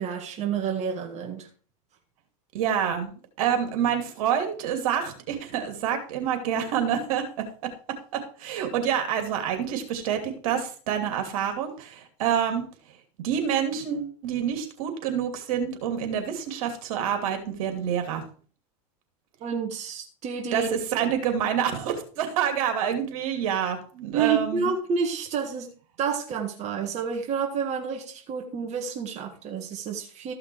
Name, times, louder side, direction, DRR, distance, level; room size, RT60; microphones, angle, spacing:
voice 1, 0.0-1.5 19.4-20.7 24.1-30.3, right 6 dB, 40° right, 3 dB, 1.8 m, -29 dB
voice 2, 2.5-12.7 13.2-18.2 20.5-24.7, right 8 dB, 75° right, 5 dB, 2.7 m, -27 dB
14.0 x 5.8 x 4.7 m, 0.41 s
supercardioid pair, 115°, 18 cm